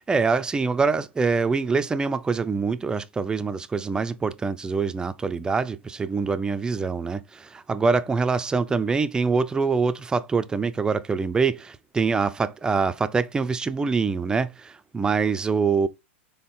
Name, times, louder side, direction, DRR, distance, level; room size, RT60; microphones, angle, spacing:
voice 1, 0.0-15.9, right 4 dB, 10° right, 0.4 m, -24 dB
4.2 x 3.5 x 3.4 m
hypercardioid pair, 120°, 7 cm